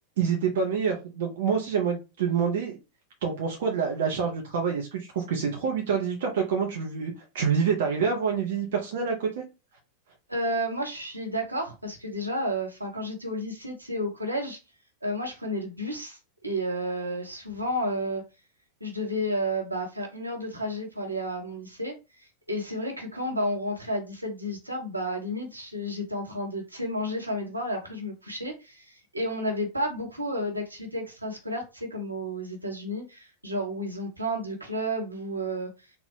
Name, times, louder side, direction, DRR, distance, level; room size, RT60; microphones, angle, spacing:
voice 1, 0.2-2.8 3.2-9.4, right 6 dB, 55° right, 0.8 m, -27 dB
voice 2, 10.3-14.6 15.0-18.2 18.8-21.9 22.2-35.7, equal, 85° right, 1.2 m, -31 dB
3.9 x 2.4 x 3.5 m
figure-of-eight pair, 90°, 0 cm